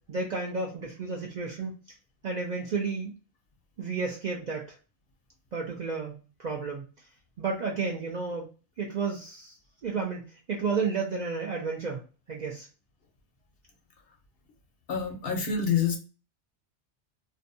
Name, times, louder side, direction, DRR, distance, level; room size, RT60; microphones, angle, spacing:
voice 1, 0.1-1.7 2.2-3.1 3.8-4.8 5.5-6.9 7.4-8.5 8.8-9.6 9.8-10.2 10.5-12.0 12.3-12.7, right 4 dB, 55° right, -1 dB, 0.5 m, -31 dB
voice 2, 14.9-16.0, left 6 dB, 65° left, 3 dB, 0.8 m, -27 dB
2.5 x 2.1 x 2.6 m, 0.35 s
omnidirectional pair, 1.2 m